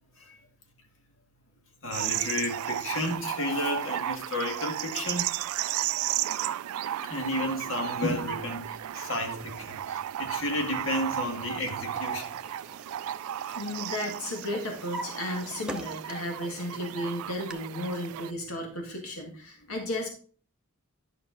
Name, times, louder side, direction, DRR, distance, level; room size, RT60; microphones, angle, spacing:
voice 1, 1.8-5.3 7.0-12.3 13.5-13.6, left 1 dB, 65° left, 1.9 m, -32 dB
sound 1, 1.9-18.3, right 12 dB, 85° right, 0.3 m, -34 dB
Drawer open or close, 11.3-13.8 14.1-16.4 16.8-17.5, equal, 5° right, 0.7 m, -44 dB
voice 2, 13.6-20.1, left 1 dB, 90° left, 1.8 m, -34 dB
10.5 x 5.6 x 3.9 m
head